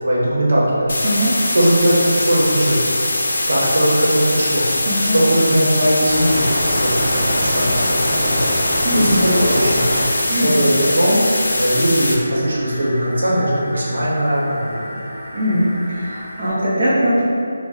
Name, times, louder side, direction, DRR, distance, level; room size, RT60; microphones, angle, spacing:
voice 1, 0.0-1.0 1.5-2.8 3.5-8.6 8.9-10.1 10.4-11.2 11.5-15.0, equal, 75° right, -6 dB, 0.9 m, -19 dB
sound 1, 0.9-12.1, left 1 dB, 70° left, 0.5 m, -22 dB
voice 2, 1.0-1.4 4.8-5.2 8.8-9.2 10.3-10.5 15.3-17.2, equal, 40° right, -10 dB, 0.6 m, -20 dB
sound 2, 1.2-16.5, equal, 5° left, 0.8 m, -29 dB
2.5 x 2.0 x 3.8 m, 2.5 s
figure-of-eight pair, 175°, 0 cm